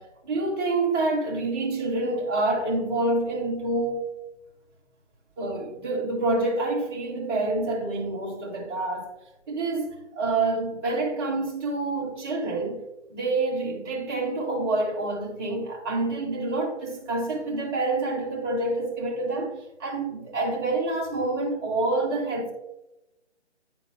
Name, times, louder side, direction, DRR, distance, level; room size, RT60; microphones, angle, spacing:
voice 1, 0.0-4.1 5.4-9.1 9.5-12.8 13.1-19.5 19.8-22.5, right 2 dB, 20° right, 1.6 m, -27 dB
9.7 x 3.9 x 3.3 m
figure-of-eight pair, 150°, 34 cm